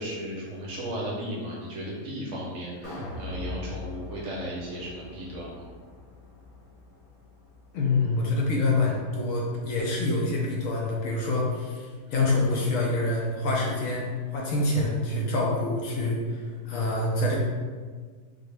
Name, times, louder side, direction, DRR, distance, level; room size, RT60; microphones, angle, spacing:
voice 1, 0.0-5.6 12.1-12.2, equal, 65° right, -4 dB, 0.8 m, -35 dB
sound 1, 2.8-9.1 9.4-9.5, left 2 dB, 50° left, 0.3 m, -42 dB
voice 2, 7.7-17.4, left 2 dB, 70° left, -2 dB, 0.9 m, -26 dB
3.6 x 2.1 x 3.2 m, 1.5 s
omnidirectional pair, 1.6 m